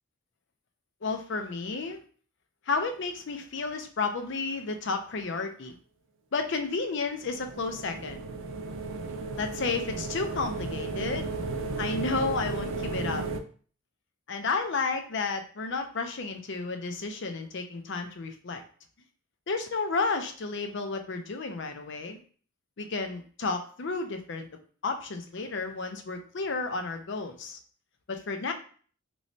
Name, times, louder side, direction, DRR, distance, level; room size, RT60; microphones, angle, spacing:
voice 1, 1.0-2.0 2.7-5.7 6.3-8.2 9.4-11.3 11.8-13.2 14.3-18.6 19.5-22.2 22.8-24.5 24.8-27.6 28.1-28.5, left 4 dB, 55° left, 6 dB, 0.5 m, -32 dB
sound 1, 7.2-13.4, right 3 dB, 60° right, 0.4 m, -34 dB
3.1 x 3.0 x 2.7 m, 0.43 s
head